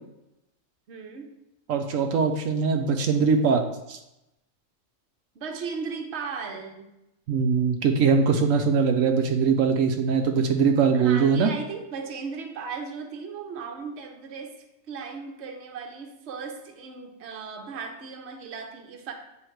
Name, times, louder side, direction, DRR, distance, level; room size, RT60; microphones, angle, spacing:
voice 1, 0.9-1.3 5.3-6.9 10.9-14.5 14.9-19.1, right 5 dB, 60° right, 4 dB, 1.1 m, -36 dB
voice 2, 1.7-4.0 7.3-11.5, right 5 dB, 85° right, 4 dB, 1.0 m, -22 dB
7.9 x 3.5 x 4.5 m, 0.90 s
omnidirectional pair, 1.3 m